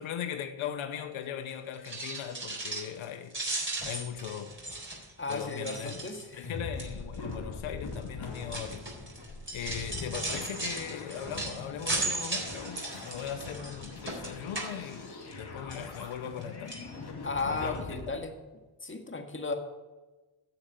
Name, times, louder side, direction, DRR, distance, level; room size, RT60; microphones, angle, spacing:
voice 1, 0.0-3.3 3.8-4.6 5.3-6.0 6.3-8.8 9.5-16.8 17.4-18.0, left 9 dB, 85° left, 0.9 m, -39 dB
sound 1, 1.7-3.0 3.3-6.4 6.8-7.1 7.9-15.4 15.7-16.4 16.7-16.9 17.4-17.5 17.7-17.8, right 2 dB, 25° right, 4.0 m, -37 dB
voice 2, 5.2-6.5 17.2-18.3 18.8-19.5, left 3 dB, 25° left, 1.9 m, -35 dB
sound 2, 6.4-18.1, left 3 dB, 55° left, 2.5 m, -43 dB
10.0 x 7.2 x 7.7 m
cardioid pair, 65°, 47 cm